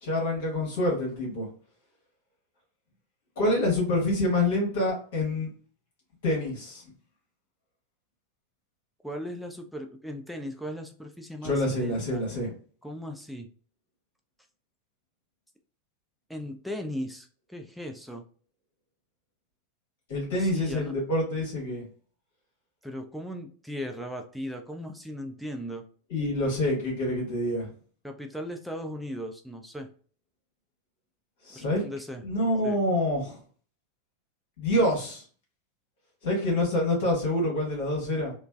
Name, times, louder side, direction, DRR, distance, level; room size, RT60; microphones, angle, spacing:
voice 1, 0.0-1.5 3.4-5.5 6.2-6.8 11.4-12.5 20.1-21.8 26.1-27.7 31.4-31.8 32.2-33.4 34.6-35.2 36.2-38.3, left 1 dB, 55° left, -2 dB, 1.1 m, -26 dB
voice 2, 9.0-12.2 12.8-13.5 16.3-18.2 20.3-20.9 22.8-25.8 28.0-29.9 31.5-32.2 32.6-32.8, equal, ahead, 4 dB, 0.4 m, -37 dB
3.2 x 2.0 x 2.2 m, 0.43 s
figure-of-eight pair, 90°, 0 cm